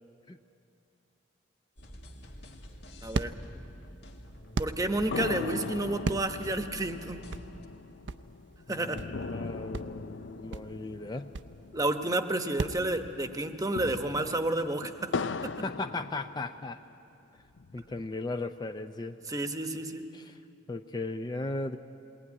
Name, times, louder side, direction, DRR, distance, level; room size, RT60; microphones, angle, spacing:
sound 1, 1.8-7.7, equal, 65° left, 1.8 m, -48 dB
sound 2, 2.0-12.8, right 3 dB, 70° right, 0.6 m, -38 dB
voice 1, 3.0-3.3 4.6-7.2 8.7-9.0 11.7-15.1 15.4-15.5 19.3-20.1, right 2 dB, 20° right, 7 dB, 1.0 m, -30 dB
sound 3, 5.1-12.7 13.0-13.1 13.5-16.9 17.4-18.4, left 4 dB, 85° left, 0.6 m, -39 dB
voice 2, 8.7-11.3 15.6-16.8 17.7-19.2 20.1-20.4 20.7-21.8, left 2 dB, 25° left, 8 dB, 0.5 m, -37 dB
21.0 x 18.5 x 9.6 m, 2.7 s
head